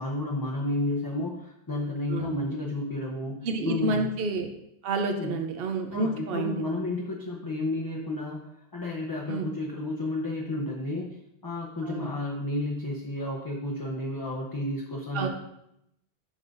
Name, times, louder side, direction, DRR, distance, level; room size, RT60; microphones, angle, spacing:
voice 1, 0.0-4.0 5.1-5.4 5.9-15.3, left 2 dB, 25° left, -2 dB, 0.8 m, -32 dB
voice 2, 3.4-4.5 4.8-6.5 9.3-9.5 11.8-12.1 15.1-15.3, right 3 dB, 70° right, 5 dB, 1.0 m, -29 dB
11.0 x 3.9 x 4.0 m, 0.81 s
omnidirectional pair, 1.0 m